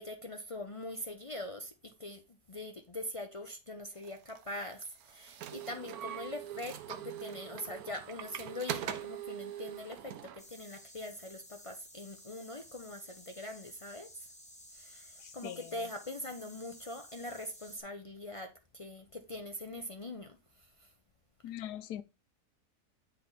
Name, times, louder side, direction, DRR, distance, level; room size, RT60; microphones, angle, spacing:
voice 1, 0.0-14.1 14.7-20.9, left 1 dB, 55° left, 0.3 m, -43 dB
sound 1, 4.0-10.4, right 10 dB, 75° right, 1.1 m, -42 dB
sound 2, 10.4-17.8, left 1 dB, 5° left, 1.1 m, -54 dB
voice 2, 15.2-15.7 21.4-22.0, left 11 dB, 85° left, 1.2 m, -42 dB
8.1 x 4.2 x 4.0 m
omnidirectional pair, 1.7 m